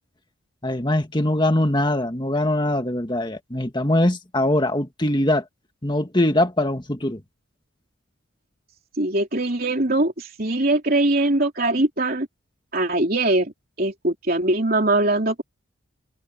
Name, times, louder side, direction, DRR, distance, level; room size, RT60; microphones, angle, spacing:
voice 1, 0.6-5.4 5.8-7.2, left 1 dB, 20° left, 1.8 m, -22 dB
voice 2, 9.0-12.3 12.7-13.5 13.8-15.4, right 2 dB, 45° right, 3.4 m, -21 dB
head